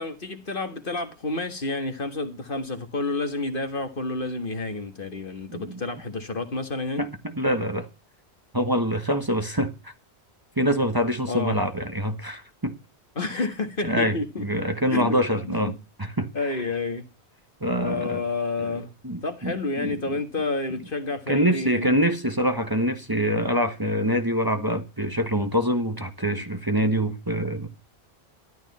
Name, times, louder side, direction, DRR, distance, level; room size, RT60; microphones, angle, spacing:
voice 1, 0.0-7.0 11.3-11.6 13.2-14.5 14.9-15.7 16.3-17.1 17.8-18.9 19.2-22.0, left 3 dB, 50° left, 1.9 m, -30 dB
voice 2, 5.5-5.8 7.0-7.1 7.4-7.9 8.5-9.9 10.6-12.7 13.4-13.5 13.8-15.7 16.0-16.3 17.6-18.2 18.6-18.7 19.0-20.0 21.3-27.7, equal, 20° right, 1.4 m, -25 dB
13.0 x 12.0 x 4.2 m
omnidirectional pair, 1.1 m